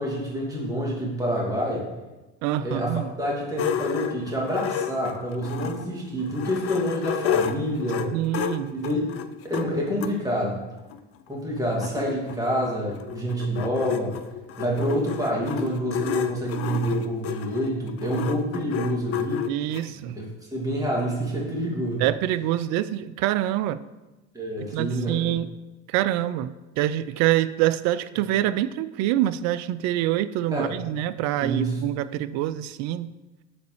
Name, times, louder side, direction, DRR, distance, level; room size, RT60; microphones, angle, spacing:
voice 1, 0.0-1.9 2.6-8.2 8.7-9.0 9.4-10.6 11.3-14.2 14.6-19.5 19.9-22.0 24.3-25.3 30.5-30.7 31.4-31.8, right 1 dB, 10° right, -3 dB, 2.4 m, -27 dB
voice 2, 2.4-3.1 8.1-8.8 19.5-20.2 22.0-23.8 24.7-25.5 25.9-33.1, right 13 dB, 55° right, 15 dB, 0.5 m, -25 dB
sound 1, 3.6-5.9 6.3-10.1 10.9-11.0 11.3-11.4 11.6-19.8, left 8 dB, 45° left, 0.6 m, -30 dB
7.1 x 4.0 x 4.8 m, 1.1 s
hypercardioid pair, 70°, 33 cm